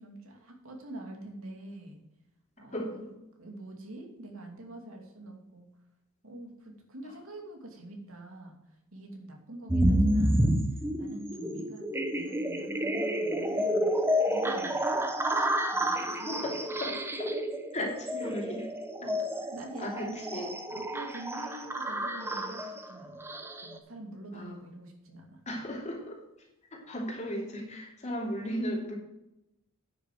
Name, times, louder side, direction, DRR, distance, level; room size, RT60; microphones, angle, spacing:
voice 1, 0.0-2.0 2.6-2.9 3.4-5.7 6.2-13.9 14.2-15.0 15.7-16.6 18.2-18.3 19.0-20.2 20.7-23.3 23.6-25.4, right 1 dB, 65° right, 1 dB, 2.8 m, -45 dB
voice 2, 2.7-3.1 11.4-11.6 16.2-17.3 17.7-18.6 19.8-20.6 24.3-24.6 25.5-29.0, equal, 30° left, 0 dB, 2.8 m, -36 dB
sound 1, 9.7-23.8, equal, 10° right, 0.9 m, -30 dB
9.8 x 6.7 x 7.8 m, 0.88 s
head